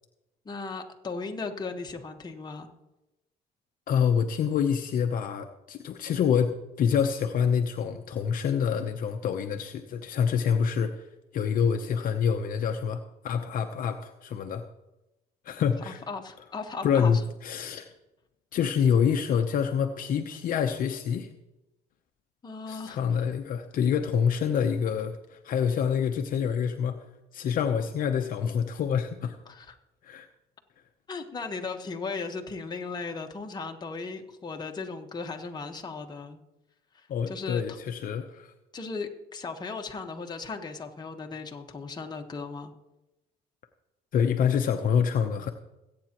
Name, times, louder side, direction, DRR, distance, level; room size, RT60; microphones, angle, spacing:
voice 1, 0.4-2.7 15.9-17.2 22.4-23.0 29.5-29.8 31.1-36.4 36.9-37.8 38.7-42.7, left 4 dB, 25° left, 3 dB, 1.3 m, -37 dB
voice 2, 3.9-11.0 11.3-14.6 15.4-16.0 16.8-17.9 18.5-21.3 22.7-27.0 27.3-29.4 30.0-30.3 37.1-38.5 44.1-45.5, left 7 dB, 55° left, 5 dB, 0.8 m, -26 dB
22.5 x 8.7 x 3.0 m, 0.98 s
cardioid pair, 110°, 17 cm